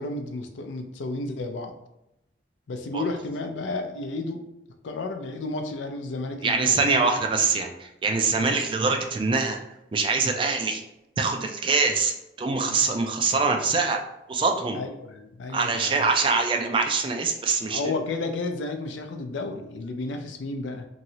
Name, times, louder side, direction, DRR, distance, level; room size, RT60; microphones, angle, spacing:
voice 1, 0.0-1.7 2.7-4.4 4.8-7.1 8.4-8.6 14.7-16.1 17.6-20.9, left 2 dB, 80° left, 5 dB, 0.4 m, -32 dB
voice 2, 6.4-9.6 9.9-10.8 11.2-12.1 12.4-14.0 14.3-14.8 15.5-17.8, right 4 dB, 25° right, 3 dB, 0.3 m, -24 dB
3.0 x 2.7 x 2.7 m, 0.88 s
head